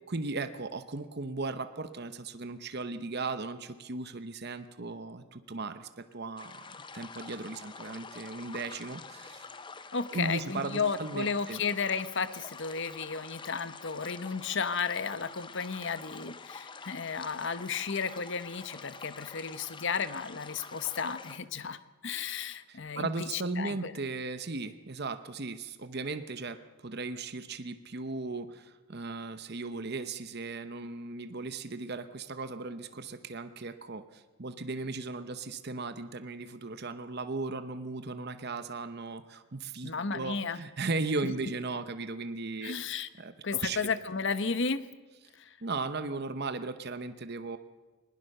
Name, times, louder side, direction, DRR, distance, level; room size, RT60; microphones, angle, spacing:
voice 1, 0.1-9.5 10.1-11.6 22.7-42.7 43.2-43.8 45.6-47.6, right 3 dB, 45° right, 10 dB, 0.9 m, -37 dB
sound 1, 6.4-21.4, left 4 dB, 20° left, 0.7 m, -47 dB
voice 2, 9.9-23.9 39.8-40.6 41.2-41.3 42.6-43.1 43.4-44.8 45.4-45.6, left 5 dB, 55° left, 13 dB, 0.9 m, -33 dB
20.0 x 20.0 x 6.7 m, 1.2 s
head